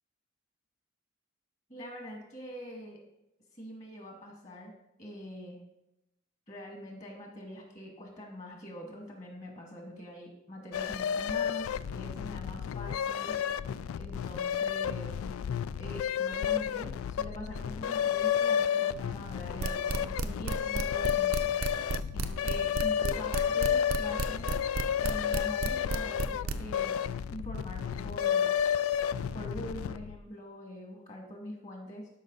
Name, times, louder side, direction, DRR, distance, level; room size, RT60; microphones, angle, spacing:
voice 1, 1.7-3.0 3.5-4.7 5.0-5.6 6.5-13.4 14.0-15.1 15.8-21.5 22.1-24.5 25.0-26.9 27.3-28.5 29.3-32.1, equal, 35° left, 0 dB, 2.0 m, -44 dB
sound 1, 10.7-30.2, left 9 dB, 80° left, 0.3 m, -31 dB
sound 2, 19.6-26.5, right 3 dB, 80° right, 0.6 m, -31 dB
12.0 x 5.4 x 4.0 m, 0.88 s
head